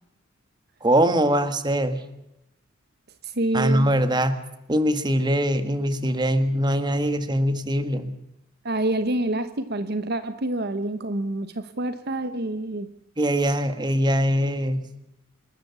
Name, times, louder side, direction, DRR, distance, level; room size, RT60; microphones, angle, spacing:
voice 1, 0.8-2.0 3.5-4.4 4.7-8.1 13.2-14.9, equal, 20° right, 10 dB, 1.6 m, -22 dB
voice 2, 3.2-3.9 8.6-12.9, right 1 dB, 55° right, 11 dB, 1.1 m, -27 dB
27.5 x 13.0 x 8.2 m, 0.88 s
head